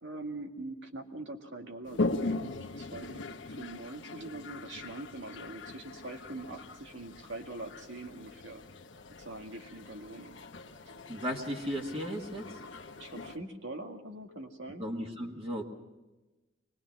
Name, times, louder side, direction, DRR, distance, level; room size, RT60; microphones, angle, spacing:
voice 1, 0.0-8.6 9.2-10.3 13.0-14.8, right 2 dB, 85° right, 3 dB, 2.1 m, -43 dB
Toilet flush, 1.9-13.4, left 2 dB, 85° left, 1.0 m, -40 dB
voice 2, 11.1-12.5 14.8-15.6, equal, 30° right, 0 dB, 1.8 m, -35 dB
24.0 x 20.0 x 6.1 m, 1.1 s
head